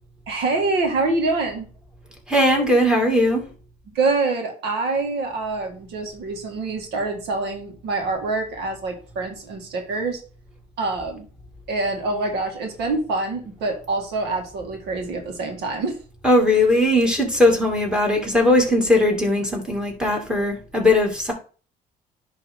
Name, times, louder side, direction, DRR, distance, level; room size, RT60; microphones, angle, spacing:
voice 1, 0.3-1.7 3.9-10.2 10.8-11.3 11.7-16.0, right 3 dB, 80° right, 2 dB, 1.9 m, -25 dB
voice 2, 2.3-3.4 16.2-21.3, left 1 dB, 5° right, 1 dB, 2.3 m, -19 dB
10.5 x 3.4 x 3.6 m, 0.38 s
cardioid pair, 110°, 17 cm